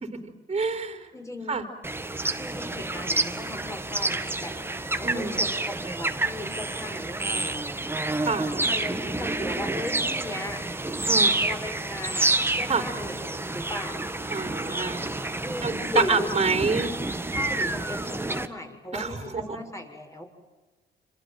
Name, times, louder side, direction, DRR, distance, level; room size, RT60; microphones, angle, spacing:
voice 1, 0.5-1.1 1.5-1.6 5.0-5.4 8.2-8.5 11.1-11.4 12.7-12.8 14.3-15.0 15.6-16.9 18.9-19.6, right 4 dB, 30° right, 7 dB, 3.8 m, -27 dB
voice 2, 1.1-1.6 2.4-4.5 4.9-7.6 8.6-10.6 11.4-14.1 15.4-16.3 17.3-20.2, left 1 dB, 15° left, 4 dB, 6.7 m, -37 dB
sound 1, 1.8-18.5, right 2 dB, 10° right, 1.8 m, -28 dB
28.0 x 27.0 x 7.7 m, 1.2 s
cardioid pair, 90°, 20 cm